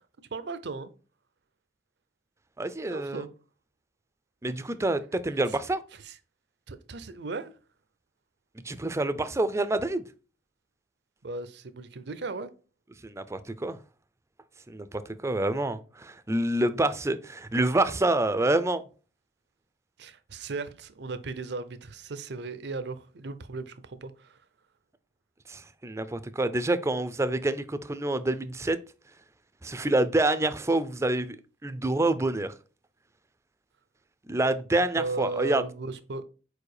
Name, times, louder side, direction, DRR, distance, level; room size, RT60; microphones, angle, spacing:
voice 1, 0.3-0.9 2.9-3.3 5.5-5.6 5.9-6.2 6.7-7.5 11.2-12.5 20.0-24.4 35.0-36.2, right 3 dB, 65° right, 0.6 m, -36 dB
voice 2, 2.6-3.3 4.4-5.8 8.6-10.0 13.0-13.8 14.7-18.8 25.5-28.8 29.6-31.4 31.6-32.5 34.3-35.6, right 2 dB, 15° right, 0.4 m, -27 dB
4.9 x 4.5 x 4.8 m
head